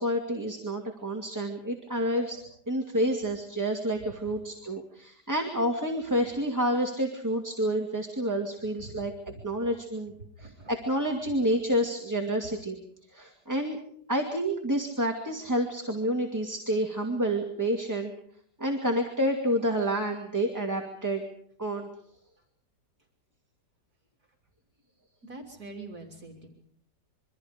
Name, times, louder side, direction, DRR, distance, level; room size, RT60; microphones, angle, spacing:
voice 1, 0.0-10.1 10.4-12.8 13.1-13.8 14.1-18.1 18.6-21.2 21.6-21.9, equal, 10° right, 2 dB, 2.2 m, -29 dB
voice 2, 10.4-10.7 25.2-26.5, right 2 dB, 55° right, 2 dB, 3.6 m, -44 dB
27.0 x 24.0 x 5.1 m, 0.64 s
omnidirectional pair, 2.0 m